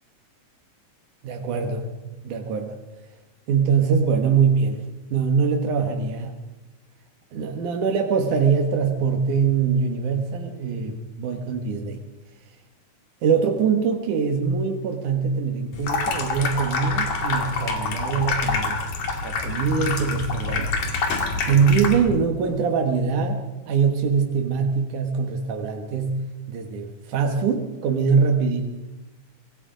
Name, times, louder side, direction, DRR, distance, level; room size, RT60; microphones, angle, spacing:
voice 1, 1.2-2.8 3.5-4.8 5.1-6.3 7.3-12.0 13.2-18.8 19.2-20.8 21.5-23.4 23.7-26.2 26.5-28.7, right 6 dB, 85° right, 3 dB, 3.0 m, -23 dB
Water tap faucet / Sink (filling or washing), 15.7-22.2, left 4 dB, 80° left, 3.8 m, -26 dB
25.5 x 20.5 x 5.1 m, 1.1 s
omnidirectional pair, 3.5 m